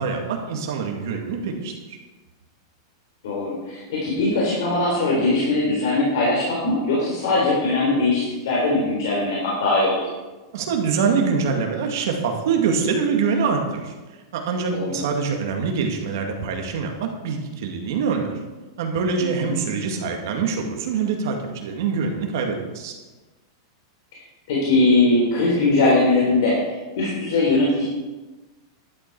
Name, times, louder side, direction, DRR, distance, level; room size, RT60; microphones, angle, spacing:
voice 1, 0.0-2.0 10.5-13.9 14.3-18.3 18.8-22.9, right 5 dB, 50° right, 3 dB, 2.0 m, -24 dB
voice 2, 3.2-10.0 14.7-15.0 19.2-19.5 24.5-27.8, left 2 dB, 55° left, -5 dB, 3.5 m, -21 dB
12.0 x 9.6 x 4.7 m, 1.2 s
supercardioid pair, 180°, 2 cm